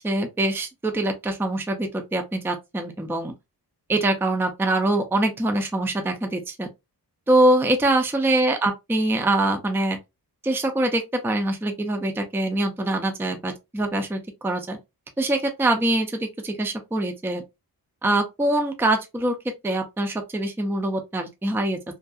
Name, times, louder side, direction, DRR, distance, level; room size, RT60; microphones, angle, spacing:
voice 1, 0.0-3.3 3.9-6.7 7.3-10.0 10.4-14.8 15.2-17.4 18.0-19.3 19.6-21.8, right 1 dB, 5° right, 0.4 m, -24 dB
2.6 x 2.3 x 2.3 m
wide cardioid pair, 125°, 38 cm